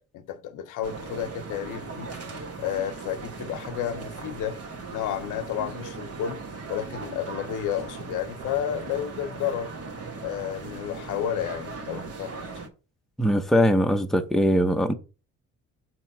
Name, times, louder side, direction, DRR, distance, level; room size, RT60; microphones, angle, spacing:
voice 1, 0.0-2.1 2.6-4.6 4.9-6.4 6.7-9.7 10.2-12.5, left 10 dB, 85° left, 0.7 m, -31 dB
sound 1, 0.8-12.7, right 4 dB, 50° right, 1.2 m, -38 dB
voice 2, 13.2-14.9, equal, ahead, 0.7 m, -21 dB
6.2 x 2.9 x 5.7 m
cardioid pair, 90°, 30 cm